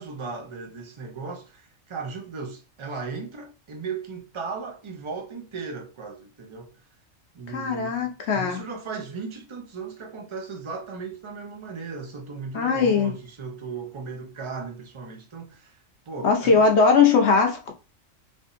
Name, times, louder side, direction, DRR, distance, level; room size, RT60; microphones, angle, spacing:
voice 1, 0.0-6.7 7.3-15.7 16.1-16.7, right 4 dB, 35° right, 0.5 m, -36 dB
voice 2, 7.5-8.6 12.5-13.1 16.2-17.7, left 5 dB, 60° left, 0.9 m, -20 dB
3.5 x 2.8 x 2.5 m
omnidirectional pair, 1.4 m